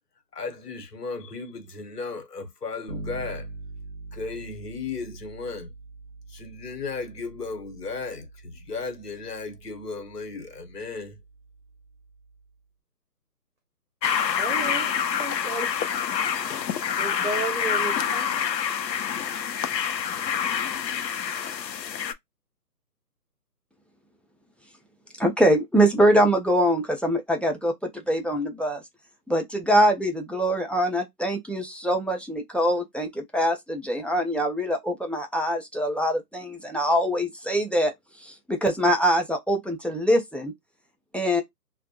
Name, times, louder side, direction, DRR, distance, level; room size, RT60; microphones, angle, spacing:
voice 1, 0.3-3.5 4.1-5.7 6.3-11.2, left 4 dB, 70° left, 1.0 m, -35 dB
Bass guitar, 2.9-12.5, right 3 dB, 40° left, 0.7 m, -44 dB
sound 1, 14.0-22.1, left 8 dB, 90° left, 0.6 m, -27 dB
voice 2, 14.4-14.9 15.2-15.7 17.0-18.3, right 4 dB, 50° right, 0.6 m, -33 dB
voice 3, 25.2-28.8 29.3-37.9 38.2-40.5 41.1-41.4, equal, 5° left, 0.3 m, -23 dB
2.2 x 2.1 x 2.7 m
hypercardioid pair, 180°, 49 cm